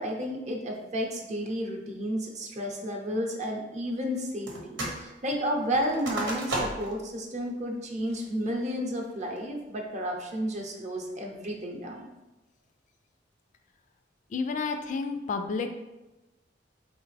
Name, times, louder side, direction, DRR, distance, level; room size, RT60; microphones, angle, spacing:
voice 1, 0.0-12.1, equal, 40° right, 1 dB, 0.7 m, -32 dB
sound 1, 4.5-5.0 5.3-7.0 7.5-7.6 8.1-8.5 9.0-9.4, right 1 dB, 85° right, 1.0 m, -34 dB
voice 2, 14.3-15.7, left 4 dB, 45° left, 7 dB, 0.3 m, -30 dB
4.1 x 3.3 x 3.2 m, 1.0 s
head